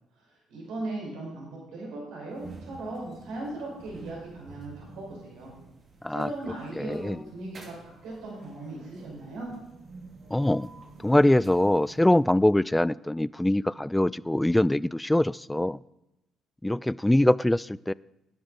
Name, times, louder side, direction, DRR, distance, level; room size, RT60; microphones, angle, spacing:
voice 1, 0.2-5.5 6.1-9.5, right 2 dB, 75° right, -3 dB, 5.6 m, -38 dB
sound 1, 2.3-12.5, right 3 dB, 50° right, 2.6 m, -49 dB
voice 2, 6.8-7.2 10.3-10.7 11.0-15.8 16.6-17.9, left 1 dB, 10° left, 21 dB, 0.3 m, -23 dB
12.5 x 10.0 x 4.2 m, 0.88 s
hypercardioid pair, 55°, 0 cm